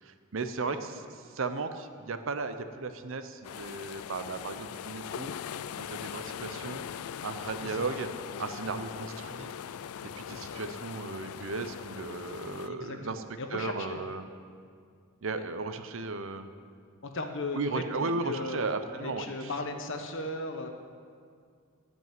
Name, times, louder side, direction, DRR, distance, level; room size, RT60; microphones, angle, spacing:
voice 1, 0.0-0.8 1.2-5.4 5.8-6.9 7.2-8.1 8.4-9.5 10.2-13.2 13.5-14.2 15.2-16.5 17.5-19.5, right 3 dB, 60° right, 9 dB, 0.7 m, -35 dB
sound 1, 3.4-12.7, left 9 dB, 80° left, 0.3 m, -40 dB
voice 2, 7.6-7.9 10.3-10.7 12.7-14.0 15.4-15.5 17.0-18.6 18.9-20.7, left 2 dB, 60° left, 5 dB, 1.1 m, -37 dB
12.5 x 5.4 x 9.1 m, 2.2 s
head